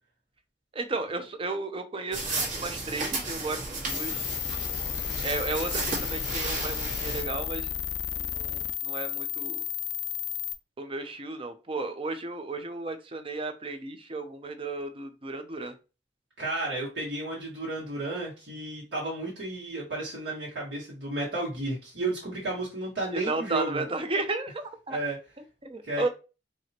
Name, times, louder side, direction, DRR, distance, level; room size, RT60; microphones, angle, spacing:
voice 1, 0.7-4.3 5.2-9.6 10.8-15.7 23.1-25.0 25.6-26.1, right 3 dB, 30° right, 7 dB, 0.6 m, -34 dB
sound 1, 2.1-7.2, right 2 dB, 50° right, 1.5 m, -34 dB
sound 2, 3.9-10.5, left 9 dB, 85° left, 0.4 m, -33 dB
voice 2, 16.4-23.8 24.9-25.2 25.8-26.1, right 2 dB, 75° right, -6 dB, 1.9 m, -33 dB
4.7 x 2.9 x 2.9 m, 0.30 s
head